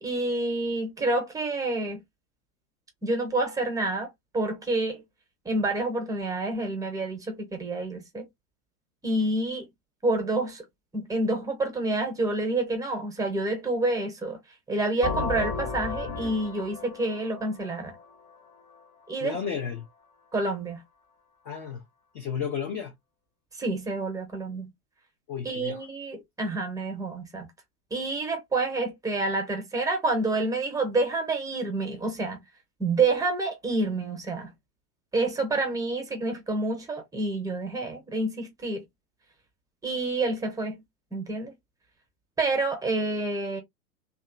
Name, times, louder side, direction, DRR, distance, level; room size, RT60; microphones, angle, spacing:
voice 1, 0.0-2.0 3.0-5.0 5.4-8.3 9.0-9.7 10.0-10.6 10.9-14.4 14.7-17.9 19.1-19.4 20.3-20.8 23.6-24.7 25.4-27.5 27.9-32.4 32.8-34.5 35.1-38.8 39.8-40.8 41.1-41.5 42.4-43.6, right 2 dB, 10° right, 0.8 m, -28 dB
sound 1, 15.0-18.7, left 4 dB, 35° left, 1.0 m, -34 dB
voice 2, 19.2-19.9 21.4-21.8 22.1-22.9 25.3-25.8, left 7 dB, 20° left, 0.3 m, -32 dB
2.7 x 2.3 x 2.4 m
figure-of-eight pair, 90°, 44 cm